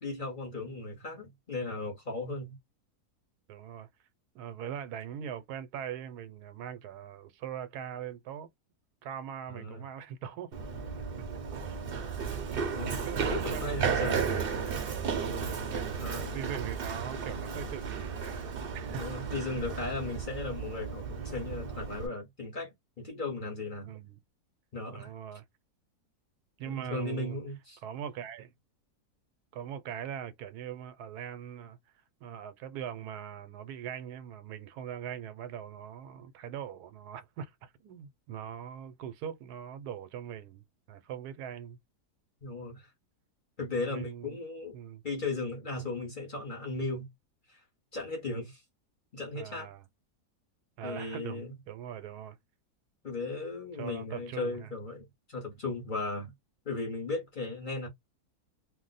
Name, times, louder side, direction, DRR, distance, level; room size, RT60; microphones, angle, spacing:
voice 1, 0.0-2.6 9.5-9.9 12.7-14.2 16.0-16.3 18.9-23.9 24.7-25.1 26.7-27.8 42.4-42.9 43.6-44.8 45.0-47.1 47.5-47.6 47.9-48.6 49.1-49.7 50.8-51.5 53.0-56.3 56.6-57.9, left 3 dB, 40° left, 0.9 m, -36 dB
voice 2, 3.5-3.9 4.3-8.5 9.0-10.5 10.9-11.2 12.7-14.0 15.5-18.4 18.7-19.0 23.8-24.2 24.9-25.4 26.6-27.4 27.8-28.5 29.5-31.8 32.2-41.8 43.8-44.4 44.7-45.0 49.4-49.8 50.8-52.4 53.8-54.7, right 9 dB, 85° right, 1.2 m, -41 dB
Run, 10.5-22.1, right 6 dB, 55° right, 0.7 m, -34 dB
2.6 x 2.1 x 4.0 m
omnidirectional pair, 1.7 m